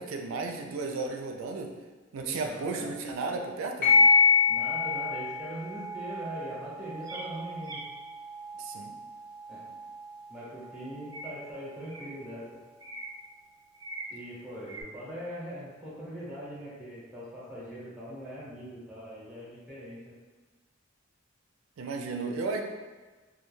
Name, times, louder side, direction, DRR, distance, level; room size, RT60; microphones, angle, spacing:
voice 1, 0.0-1.7 2.1-3.9 8.6-8.9 21.8-22.6, right 3 dB, 90° right, 3 dB, 0.3 m, -34 dB
voice 2, 2.2-2.9 4.5-7.8 9.5-9.6 10.3-12.4 14.1-20.2 22.2-22.6, equal, ahead, -10 dB, 0.8 m, -41 dB
sound 1, 3.8-12.8, left 5 dB, 50° left, 1.0 m, -29 dB
sound 2, 7.1-7.2 7.6-7.8 11.1-11.3 11.9-12.1 12.8-13.1 13.7-14.1 14.6-14.8, right 2 dB, 20° right, 0.4 m, -41 dB
2.2 x 2.2 x 3.1 m, 1.3 s
head